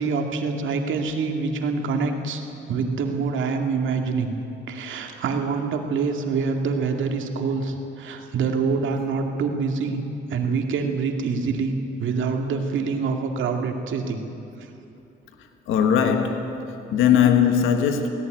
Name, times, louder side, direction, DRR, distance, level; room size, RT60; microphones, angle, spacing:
voice 1, 0.0-2.4 2.7-4.3 4.7-10.0 10.3-14.2, right 4 dB, 75° right, 2.2 m, -25 dB
voice 2, 15.7-18.1, left 8 dB, 90° left, 1.4 m, -20 dB
17.0 x 17.0 x 9.2 m
cardioid pair, 90°, 20 cm